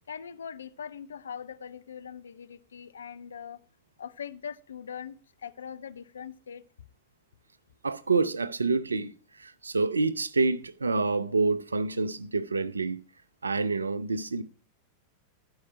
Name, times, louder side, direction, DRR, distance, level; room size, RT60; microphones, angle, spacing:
voice 1, 0.1-3.6 4.0-6.6, left 7 dB, 70° left, 0.6 m, -41 dB
voice 2, 7.8-9.1 9.4-13.0 13.4-14.4, right 3 dB, 75° right, 0.6 m, -27 dB
13.0 x 4.8 x 5.8 m
figure-of-eight pair, 90°, 0 cm